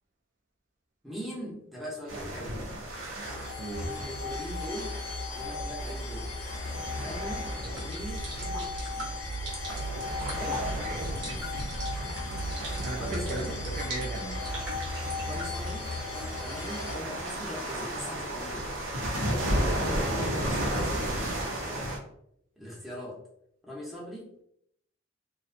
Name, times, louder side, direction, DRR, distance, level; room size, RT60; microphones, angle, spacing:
voice 1, 1.0-2.6 3.7-5.0 5.3-6.3 6.9-9.1 10.3-10.6 13.0-13.6 15.2-18.7 19.5-20.9 21.3-21.8 22.6-23.2 23.6-24.4, equal, ahead, -4 dB, 0.6 m, -41 dB
sound 1, 2.1-22.0, right 1 dB, 80° right, 0.7 m, -35 dB
sound 2, 3.2-16.9, left 2 dB, 80° left, 0.4 m, -36 dB
sound 3, 7.5-16.0, right 1 dB, 60° right, 1.0 m, -42 dB
voice 2, 10.8-11.9 12.2-14.4, right 2 dB, 45° right, 0 dB, 0.4 m, -38 dB
2.6 x 2.1 x 2.5 m, 0.72 s
head